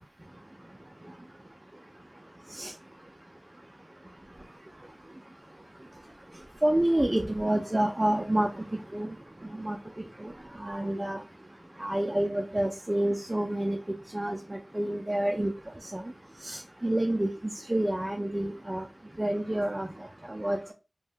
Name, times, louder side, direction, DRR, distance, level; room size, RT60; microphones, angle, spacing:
voice 1, 6.6-9.1 9.6-9.8 10.2-10.3 10.6-11.2 11.8-13.8 14.1-15.5 15.8-16.0 16.4-17.3 17.7-18.9 19.2-19.9 20.3-20.7, right 1 dB, 30° right, 3 dB, 0.3 m, -28 dB
2.6 x 2.2 x 3.2 m, 0.31 s
wide cardioid pair, 45°, 0 cm